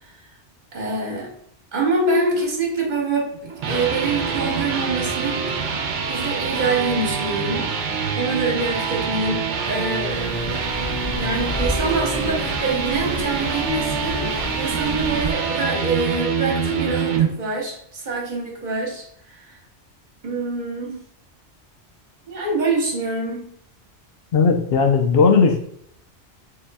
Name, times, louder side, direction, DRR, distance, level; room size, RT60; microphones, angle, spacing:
voice 1, 0.7-1.3 1.7-5.7 6.1-7.7 8.2-10.3 11.1-19.6 20.2-21.0 22.3-23.5, right 3 dB, 45° right, 0 dB, 1.2 m, -25 dB
sound 1, 3.3-17.3, right 5 dB, 85° right, 1.0 m, -25 dB
sound 2, 10.1-15.3, left 1 dB, 30° left, 0.4 m, -31 dB
voice 2, 24.3-25.6, left 5 dB, 65° left, 4 dB, 0.8 m, -16 dB
6.6 x 2.7 x 2.2 m, 0.68 s
omnidirectional pair, 1.2 m